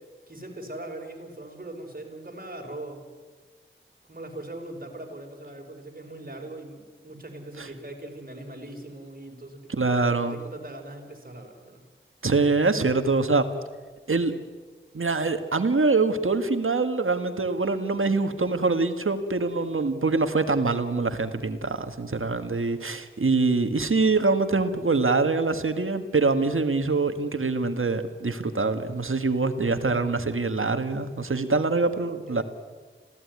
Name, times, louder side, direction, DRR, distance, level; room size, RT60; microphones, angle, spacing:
voice 1, 0.3-3.0 4.1-11.8 32.3-32.4, right 1 dB, 45° right, 2 dB, 5.2 m, -40 dB
voice 2, 9.7-10.4 12.2-13.5 14.1-14.3 14.9-32.4, right 3 dB, 80° right, 8 dB, 1.8 m, -24 dB
26.5 x 17.0 x 9.7 m, 1.4 s
wide cardioid pair, 40°, 21 cm